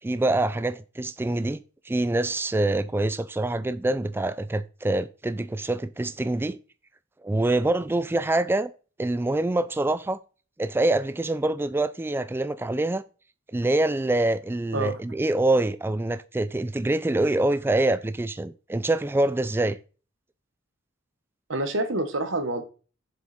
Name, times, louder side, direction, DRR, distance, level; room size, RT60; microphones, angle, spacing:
voice 1, 0.0-1.6 1.9-6.6 7.2-8.7 9.0-10.2 10.6-13.0 13.5-19.8, right 2 dB, 10° right, 0.3 m, -25 dB
voice 2, 21.5-22.6, right 2 dB, 85° right, 1.5 m, -27 dB
7.3 x 6.2 x 4.3 m
head